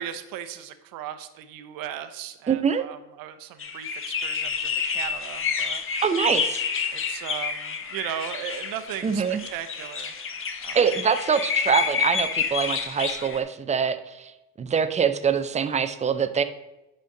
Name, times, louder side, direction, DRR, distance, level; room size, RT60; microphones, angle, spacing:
voice 1, 0.0-5.8 6.9-9.2 9.5-10.2 10.6-10.8, right 10 dB, 60° right, 10 dB, 0.9 m, -37 dB
voice 2, 2.5-2.8 6.0-6.6 9.0-9.5 10.7-14.3 14.6-16.4, right 6 dB, 20° right, 11 dB, 0.5 m, -24 dB
sound 1, 3.6-13.4, left 6 dB, 35° left, 0.9 m, -29 dB
10.0 x 4.3 x 3.8 m, 0.98 s
supercardioid pair, 100°, 38 cm